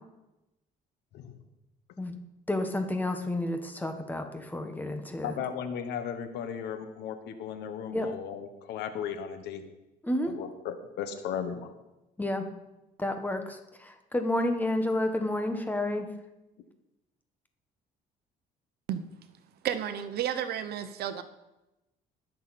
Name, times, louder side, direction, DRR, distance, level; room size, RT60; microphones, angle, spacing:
voice 1, 2.5-5.3 7.9-8.1 10.0-10.3 12.2-12.5 13.0-16.1, left 1 dB, 10° left, 6 dB, 1.4 m, -30 dB
voice 2, 5.2-9.7 10.3-11.7, left 8 dB, 80° left, 9 dB, 1.2 m, -36 dB
voice 3, 19.6-21.2, right 10 dB, 70° right, 10 dB, 0.9 m, -32 dB
19.5 x 6.8 x 4.3 m, 0.99 s
cardioid pair, 110°, 17 cm